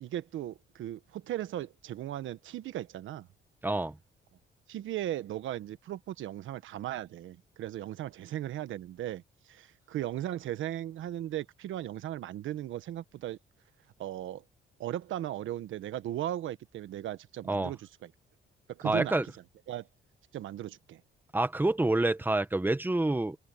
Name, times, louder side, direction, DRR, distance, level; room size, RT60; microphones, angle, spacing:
voice 1, 0.0-3.3 4.7-13.4 14.0-14.4 14.8-18.1 18.7-19.1 19.7-19.9 20.3-21.0, right 12 dB, 80° right, 1.2 m, -37 dB
voice 2, 3.6-4.0 17.5-17.7 18.8-19.2 21.3-23.4, right 2 dB, 10° right, 1.5 m, -27 dB
open air
cardioid pair, 90°, 20 cm